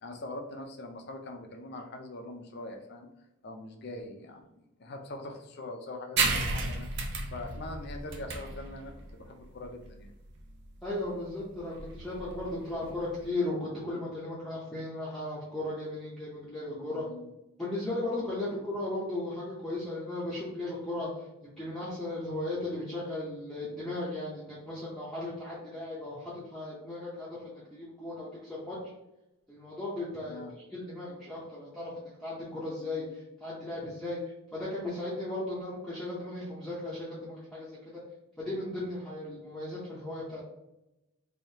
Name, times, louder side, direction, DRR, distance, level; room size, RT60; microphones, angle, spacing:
voice 1, 0.0-3.1 3.4-10.1 16.7-17.3 30.3-30.5, left 2 dB, 50° left, 3 dB, 0.5 m, -43 dB
sound 1, 6.2-13.3, right 3 dB, 50° right, 0.5 m, -34 dB
voice 2, 10.8-17.0 17.6-21.1 21.4-28.8 29.5-34.2 34.5-37.8 38.4-40.4, left 2 dB, ahead, -9 dB, 0.6 m, -36 dB
3.4 x 2.7 x 2.7 m, 0.90 s
head